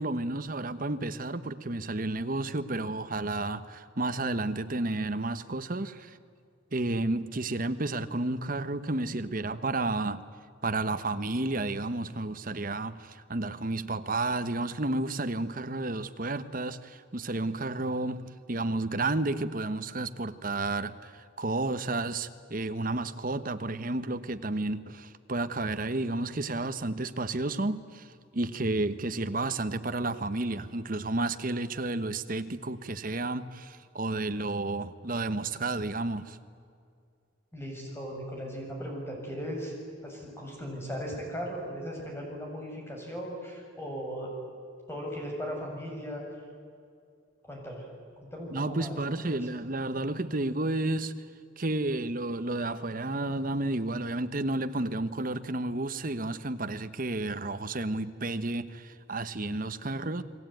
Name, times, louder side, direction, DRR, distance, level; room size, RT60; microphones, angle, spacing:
voice 1, 0.0-6.2 6.7-10.2 10.6-36.4 48.5-51.1 51.6-60.2, right 2 dB, 45° right, 1.2 m, -31 dB
voice 2, 37.5-39.7 40.0-44.3 44.9-46.2 47.4-47.8 48.2-49.4, equal, 10° left, 7.4 m, -37 dB
30.0 x 21.5 x 9.3 m
head